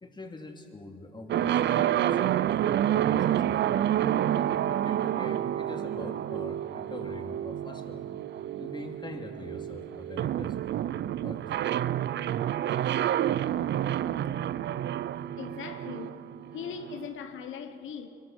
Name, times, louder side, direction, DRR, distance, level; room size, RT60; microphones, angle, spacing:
voice 1, 0.0-8.0 8.6-10.7 11.2-11.4, left 2 dB, 20° left, 2.7 m, -43 dB
sound 1, 1.3-17.1, right 11 dB, 60° right, 0.5 m, -29 dB
voice 2, 15.4-16.2 16.4-18.1, left 7 dB, 75° left, 1.2 m, -39 dB
24.0 x 22.5 x 6.3 m
cardioid pair, 90°, 20 cm